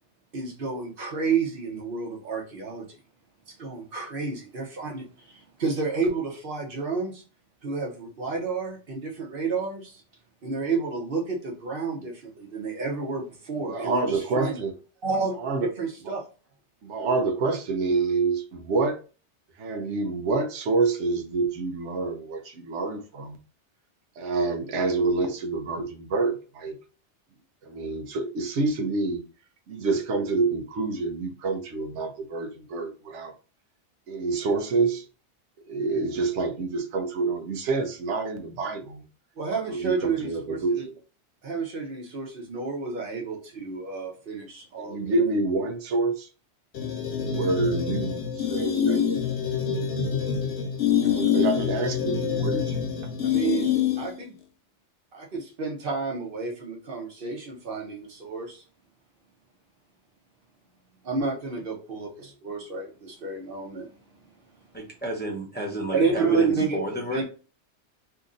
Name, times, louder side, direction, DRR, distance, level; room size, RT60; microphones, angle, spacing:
voice 1, 0.3-3.0 3.5-7.2 7.6-10.0 10.4-14.6 15.0-16.2 39.4-40.6 41.4-45.3 53.2-54.3 55.1-58.6 61.0-63.9 65.9-66.8 67.1-67.2, right 4 dB, 55° right, 1.1 m, -30 dB
voice 2, 13.7-14.7 15.4-15.7 16.1-16.2 16.8-19.0 19.6-23.4 24.2-26.8 27.6-29.2 29.7-33.3 34.1-35.1 35.7-39.0 39.7-41.0 43.1-43.3 44.8-46.3 47.3-49.2 51.0-52.8, right 3 dB, 85° right, 1.0 m, -27 dB
sound 1, 46.7-54.2, left 8 dB, 65° left, 0.9 m, -26 dB
voice 3, 64.7-67.2, right 1 dB, 10° left, 0.7 m, -32 dB
2.8 x 2.6 x 3.7 m
omnidirectional pair, 1.2 m